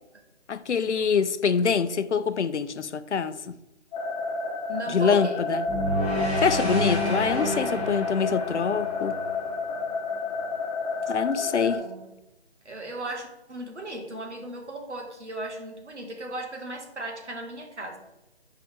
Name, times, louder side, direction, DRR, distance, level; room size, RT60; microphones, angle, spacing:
voice 1, 0.5-3.6 4.9-5.7 6.4-9.2 11.1-11.8, left 6 dB, 90° left, 0.5 m, -25 dB
sound 1, 3.9-11.8, left 3 dB, 30° left, 1.2 m, -30 dB
voice 2, 4.7-5.5 6.8-7.6 11.3-12.1 12.6-18.0, right 1 dB, 85° right, 1.5 m, -37 dB
sound 2, 5.7-9.9, left 1 dB, 5° right, 1.1 m, -29 dB
6.9 x 4.5 x 3.5 m
figure-of-eight pair, 150°, 34 cm